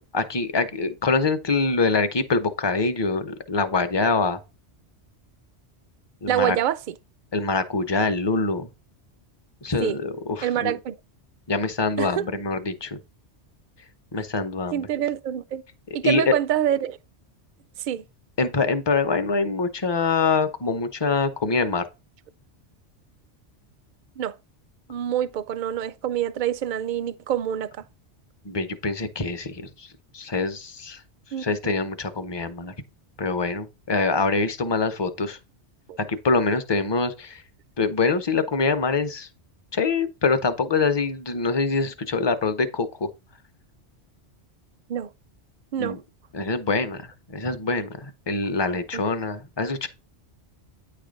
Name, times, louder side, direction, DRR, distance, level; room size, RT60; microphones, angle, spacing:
voice 1, 0.1-4.4 6.2-6.6 7.3-8.7 9.6-10.7 11.5-13.0 14.1-14.8 16.0-16.3 18.4-21.9 28.4-29.9 30.1-31.0 31.4-32.7 33.2-35.4 36.1-37.4 37.8-39.3 39.7-43.1 45.8-46.0 46.3-49.9, left 4 dB, 30° left, 0.6 m, -24 dB
voice 2, 6.3-6.9 9.8-10.0 10.4-11.0 12.0-12.2 14.7-15.6 15.9-17.0 17.9-18.0 24.2-24.3 24.9-27.7 31.3-31.4 35.9-36.0 44.9-45.1 45.7-46.0 48.7-48.8, right 10 dB, 55° right, 0.6 m, -26 dB
9.2 x 3.3 x 5.1 m
omnidirectional pair, 1.2 m